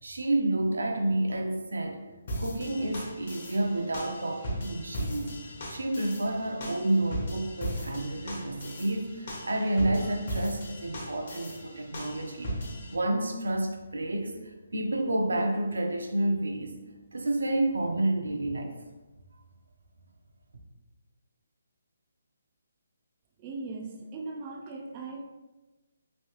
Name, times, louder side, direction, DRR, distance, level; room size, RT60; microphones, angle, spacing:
voice 1, 0.0-2.0 2.4-16.8 17.1-18.7, right 1 dB, 90° right, 3 dB, 0.5 m, -30 dB
sound 1, 2.3-12.9, equal, 50° left, 0.8 m, -38 dB
voice 2, 23.4-25.2, right 3 dB, 25° right, 1 dB, 0.3 m, -39 dB
3.1 x 2.7 x 2.9 m, 1.1 s
hypercardioid pair, 160°, 0 cm